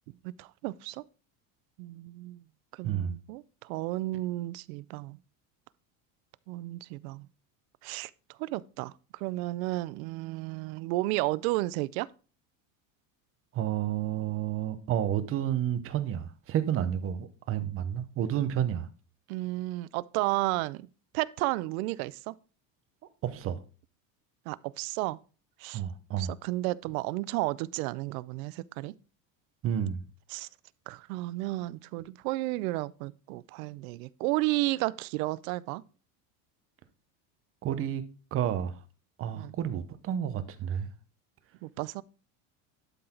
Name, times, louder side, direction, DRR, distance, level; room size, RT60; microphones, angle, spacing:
voice 1, 0.2-1.0 1.8-2.4 2.8-5.2 6.5-7.3 7.8-8.1 8.4-12.1 19.3-20.9 21.1-22.3 24.5-25.2 25.6-25.8 26.2-29.0 30.3-30.5 30.9-35.8 39.3-39.5 41.6-42.0, right 19 dB, 85° right, 0.5 m, -32 dB
voice 2, 2.8-3.2 13.5-18.9 23.2-23.6 25.7-26.3 29.6-30.0 37.6-38.0 38.3-38.8 39.2-40.9, right 10 dB, 35° right, 0.8 m, -30 dB
11.5 x 3.9 x 4.3 m
cardioid pair, 155°, 41 cm